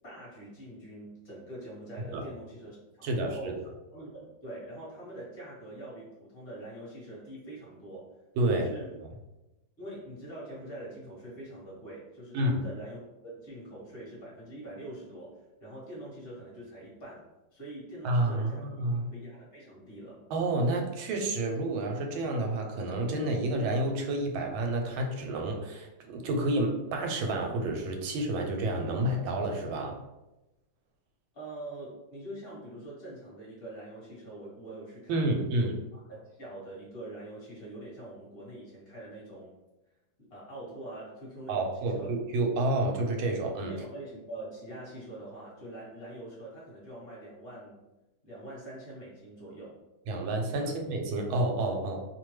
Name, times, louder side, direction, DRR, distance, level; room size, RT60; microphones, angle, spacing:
voice 1, 0.0-8.1 8.5-9.0 9.8-18.7 19.1-20.3 31.3-39.5 40.2-42.1 43.7-47.8 48.2-49.8 50.6-50.7, right 1 dB, 35° left, -6 dB, 1.1 m, -44 dB
voice 2, 3.0-3.5 8.4-8.7 12.3-12.6 18.0-19.1 20.3-30.0 35.1-35.8 41.5-43.7 50.1-52.1, right 1 dB, 85° right, 2 dB, 1.4 m, -29 dB
3.1 x 2.2 x 3.0 m, 0.98 s
omnidirectional pair, 2.1 m